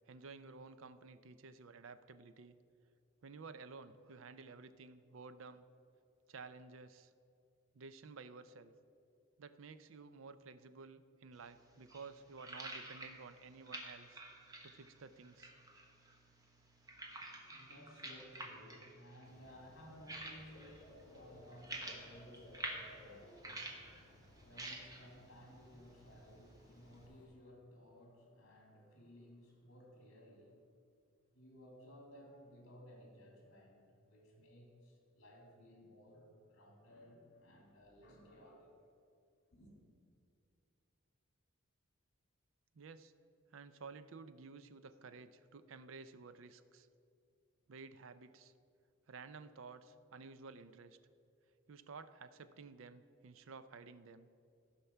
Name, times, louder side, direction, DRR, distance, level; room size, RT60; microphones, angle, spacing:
voice 1, 0.1-2.6 3.2-5.7 6.3-7.1 7.7-8.7 9.4-14.2 14.6-15.5 42.7-43.1 43.5-46.9 47.7-48.5 49.1-51.0 51.7-54.3, right 4 dB, 65° right, 12 dB, 0.5 m, -53 dB
sound 1, 11.3-27.1, right 2 dB, 15° right, 1.0 m, -51 dB
voice 2, 16.9-30.6 31.3-38.7 39.5-39.8, equal, 60° left, 0 dB, 2.5 m, -58 dB
Dog / Bird, 19.2-27.2, left 1 dB, 20° left, 1.7 m, -60 dB
14.5 x 5.9 x 5.6 m, 2.4 s
head